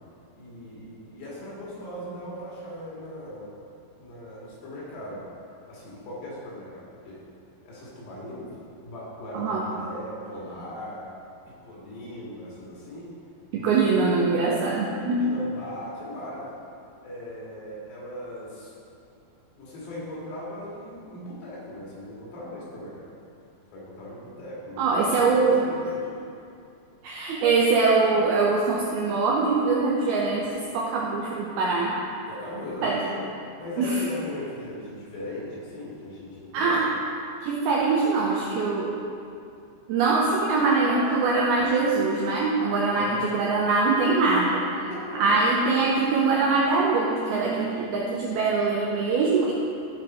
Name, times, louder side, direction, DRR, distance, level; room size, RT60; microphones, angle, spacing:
voice 1, 0.3-3.5 4.0-5.2 5.7-7.2 7.6-8.5 8.8-11.0 11.5-13.1 13.5-13.8 15.0-16.5 17.0-18.7 19.6-23.1 23.7-26.1 32.3-33.3 33.6-36.8 42.9-43.3 44.8-45.3, left 1 dB, 65° left, -6 dB, 4.0 m, -39 dB
voice 2, 13.5-15.3 24.8-25.7 27.0-32.0 32.8-33.1 33.8-34.0 36.5-36.9 37.4-39.0 39.9-44.7 45.2-49.5, right 3 dB, 85° right, -3 dB, 2.2 m, -23 dB
14.0 x 5.3 x 4.3 m, 2.5 s
omnidirectional pair, 5.3 m